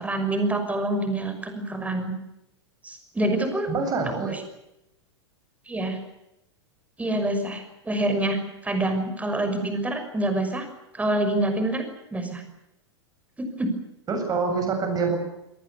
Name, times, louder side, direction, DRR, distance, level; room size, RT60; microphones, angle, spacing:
voice 1, 0.0-2.1 2.8-3.7 4.3-4.4 5.7-6.0 7.0-10.6 10.9-11.8 12.1-12.4 13.4-13.7, right 1 dB, 10° right, 7 dB, 6.1 m, -26 dB
voice 2, 3.7-4.4 14.1-15.2, right 4 dB, 25° right, 5 dB, 7.9 m, -25 dB
27.0 x 19.0 x 8.5 m, 0.87 s
figure-of-eight pair, 95°, 15 cm